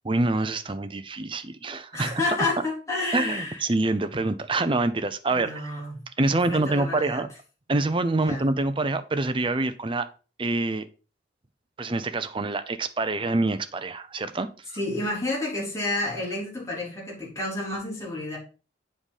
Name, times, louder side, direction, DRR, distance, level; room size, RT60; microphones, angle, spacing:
voice 1, 0.0-2.2 3.1-5.7 6.2-7.3 7.7-10.1 10.4-10.9 11.8-14.5, right 2 dB, 30° right, 0.6 m, -26 dB
voice 2, 1.9-3.6 5.3-6.0 6.3-7.2 8.1-8.4 14.7-18.4, left 2 dB, 15° left, 3.8 m, -30 dB
7.9 x 4.9 x 5.3 m
head